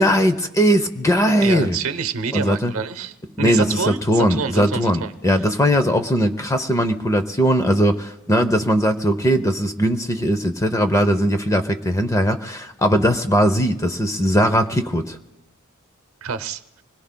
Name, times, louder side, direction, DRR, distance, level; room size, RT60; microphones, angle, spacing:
voice 1, 0.0-1.8 2.3-2.7 3.4-15.2, equal, 15° left, 8 dB, 0.6 m, -19 dB
voice 2, 1.4-3.1 3.4-5.4 16.2-16.8, right 5 dB, 80° right, 11 dB, 0.8 m, -27 dB
25.0 x 21.0 x 2.2 m, 0.95 s
head